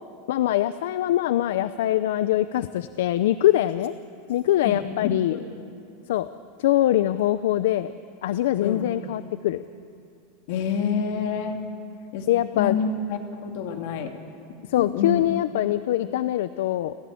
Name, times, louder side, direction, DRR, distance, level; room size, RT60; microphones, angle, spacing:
voice 1, 0.3-3.9 4.3-5.4 6.1-6.3 6.6-7.9 8.2-9.6 12.3-12.8 14.7-16.9, left 13 dB, 65° left, 13 dB, 0.6 m, -23 dB
voice 2, 4.6-5.4 8.6-8.8 10.5-11.6 12.1-12.3 12.5-14.1 14.8-15.2, left 6 dB, 50° left, 4 dB, 2.4 m, -28 dB
29.5 x 15.5 x 8.5 m, 2.5 s
supercardioid pair, 175°, 0 cm